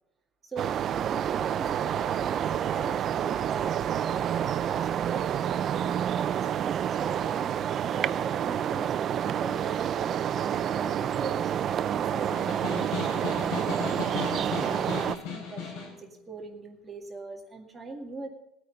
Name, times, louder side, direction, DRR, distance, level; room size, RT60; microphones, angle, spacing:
voice 1, 0.4-5.3 5.6-12.4 13.0-18.3, right 3 dB, 15° right, 1 dB, 2.0 m, -41 dB
sound 1, 0.6-15.1, right 9 dB, 35° right, 0.4 m, -28 dB
Snare drum, 12.2-16.0, left 5 dB, 80° left, 5.0 m, -35 dB
21.0 x 9.0 x 3.9 m, 0.87 s
cardioid pair, 165°, 0 cm